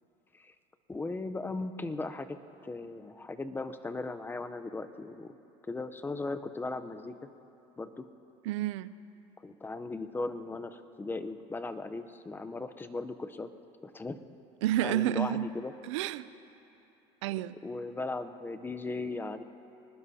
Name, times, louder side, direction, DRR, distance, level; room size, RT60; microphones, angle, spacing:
voice 1, 0.9-2.4 2.6-5.3 5.7-7.1 7.8-8.0 9.4-13.5 13.8-14.2 14.8-15.7 17.6-19.4, left 3 dB, 15° left, 9 dB, 0.7 m, -37 dB
voice 2, 8.4-8.9 14.6-15.5 15.8-16.3 17.2-17.5, right 13 dB, 85° right, 16 dB, 0.5 m, -30 dB
24.5 x 19.5 x 2.8 m, 2.8 s
supercardioid pair, 105°, 15 cm